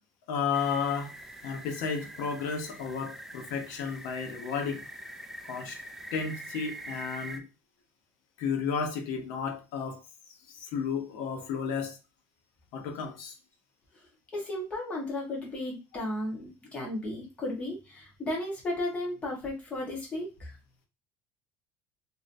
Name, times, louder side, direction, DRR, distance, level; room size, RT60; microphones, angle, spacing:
voice 1, 0.3-1.1 1.4-4.8 5.5-5.8 6.1-7.4 8.4-10.0 10.5-12.0 12.7-13.3, left 6 dB, 70° left, 4 dB, 0.8 m, -32 dB
sound 1, 0.5-7.4, right 1 dB, 5° right, 0.3 m, -44 dB
voice 2, 14.3-20.5, left 1 dB, 20° left, -2 dB, 1.2 m, -34 dB
3.1 x 2.8 x 2.6 m, 0.28 s
cardioid pair, 165°, 6 cm